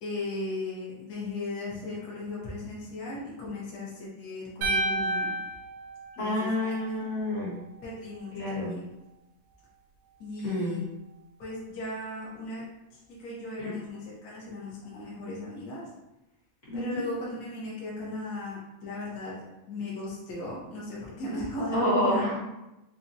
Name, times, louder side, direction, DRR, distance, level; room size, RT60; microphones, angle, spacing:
voice 1, 0.0-5.3 6.2-7.0 7.8-8.8 10.2-10.8 11.4-12.6 13.1-15.8 16.7-19.4 19.7-22.2, left 2 dB, 70° left, -7 dB, 0.9 m, -37 dB
sound 1, 4.6-6.9, right 1 dB, 75° right, 1.7 m, -30 dB
voice 2, 6.2-7.6 8.3-8.7 10.4-10.8 13.6-13.7 16.7-17.0 21.7-22.4, left 1 dB, 35° left, -9 dB, 1.2 m, -28 dB
5.4 x 2.3 x 2.7 m, 0.94 s
omnidirectional pair, 3.3 m